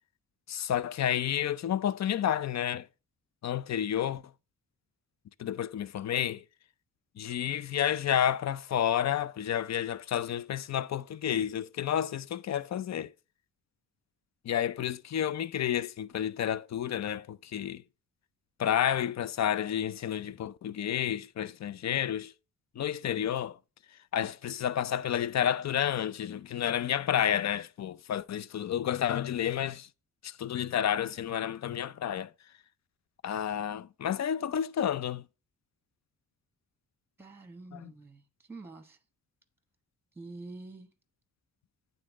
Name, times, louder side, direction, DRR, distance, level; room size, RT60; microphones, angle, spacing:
voice 1, 0.5-2.9 3.4-4.2 5.4-6.4 7.2-13.1 14.4-17.8 18.6-22.3 22.8-23.6 24.1-29.9 30.2-32.3 33.2-35.2 37.7-37.9, left 10 dB, 50° left, 0.5 m, -30 dB
voice 2, 37.2-39.0 40.1-40.9, right 3 dB, 5° right, 1.1 m, -47 dB
8.8 x 3.9 x 6.1 m
cardioid pair, 80°, 35 cm